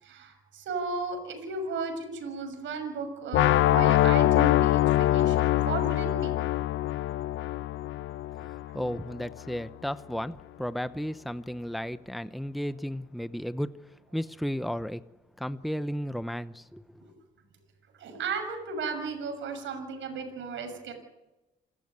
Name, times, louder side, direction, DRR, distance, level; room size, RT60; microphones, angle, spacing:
voice 1, 0.0-6.3 17.0-17.1 18.0-20.9, right 4 dB, 75° right, 6.7 m, -35 dB
sound 1, 3.3-9.3, left 14 dB, 80° left, 0.7 m, -24 dB
voice 2, 8.4-13.7 14.1-15.0 15.4-16.8, equal, ahead, 0.8 m, -34 dB
28.0 x 14.5 x 9.7 m
cardioid pair, 90°, 20 cm